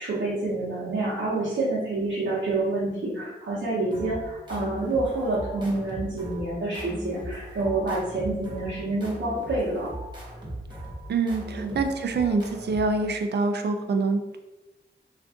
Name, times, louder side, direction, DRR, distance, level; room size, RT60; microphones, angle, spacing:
voice 1, 0.0-9.9 11.5-11.8, right 2 dB, 75° right, -8 dB, 0.9 m, -28 dB
sound 1, 3.9-13.4, right 1 dB, 25° right, 1.1 m, -39 dB
voice 2, 11.1-14.4, right 3 dB, 60° right, 6 dB, 0.4 m, -25 dB
2.5 x 2.4 x 3.5 m, 1.0 s
cardioid pair, 60°, 20 cm